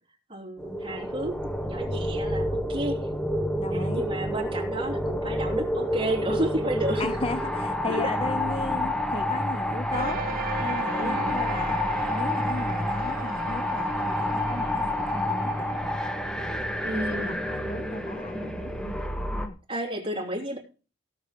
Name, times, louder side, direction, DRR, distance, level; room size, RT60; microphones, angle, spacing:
voice 1, 0.3-3.1 3.7-7.2 7.9-8.1 11.0-11.3 16.8-17.4 19.7-20.6, right 1 dB, 25° right, 3.1 m, -32 dB
sound 1, 0.6-19.5, left 1 dB, 5° left, 1.2 m, -29 dB
voice 2, 3.6-4.0 7.0-10.3 10.6-16.0 16.4-19.6, left 2 dB, 30° left, 0.6 m, -36 dB
sound 2, 9.9-18.9, right 4 dB, 45° right, 1.0 m, -39 dB
16.5 x 6.8 x 5.2 m
head